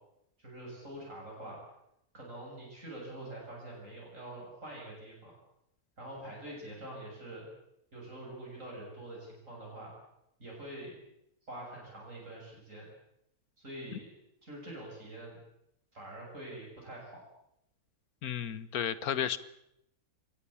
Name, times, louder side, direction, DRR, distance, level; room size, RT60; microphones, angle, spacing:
voice 1, 0.4-1.6 2.1-5.3 6.0-7.5 7.9-9.9 10.4-11.0 11.5-12.9 13.6-14.1 14.4-15.4 15.9-17.2, right 1 dB, 55° right, -3 dB, 7.5 m, -45 dB
voice 2, 18.2-19.4, left 9 dB, 75° left, 16 dB, 1.5 m, -33 dB
23.0 x 19.0 x 8.6 m, 0.80 s
omnidirectional pair, 1.6 m